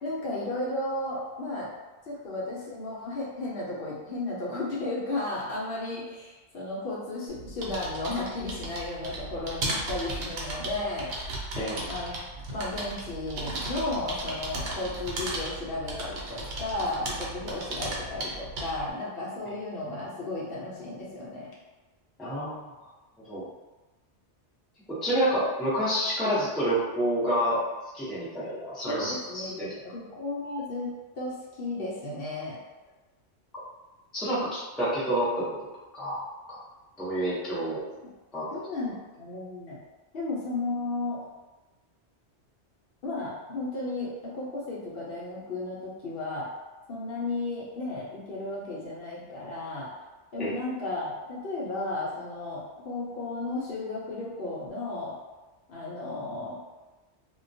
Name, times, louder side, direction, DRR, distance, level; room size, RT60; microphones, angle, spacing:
voice 1, 0.0-1.7 2.1-11.1 11.8-12.2 12.5-21.5 28.9-30.9 31.1-32.6 37.9-38.1 38.5-39.8 40.1-41.2 43.0-46.5 46.9-49.9 50.3-55.2 55.7-56.6, left 2 dB, 65° left, -6 dB, 0.8 m, -34 dB
sound 1, 7.3-18.9, right 2 dB, 80° right, 0.9 m, -36 dB
voice 2, 22.2-22.7 23.3-23.4 24.9-27.6 27.9-29.7 34.1-35.5 35.9-36.2 36.5-36.6 37.0-37.8 38.3-38.4 50.4-50.5, right 1 dB, ahead, -10 dB, 0.4 m, -28 dB
2.2 x 2.2 x 2.5 m, 1.1 s
omnidirectional pair, 1.1 m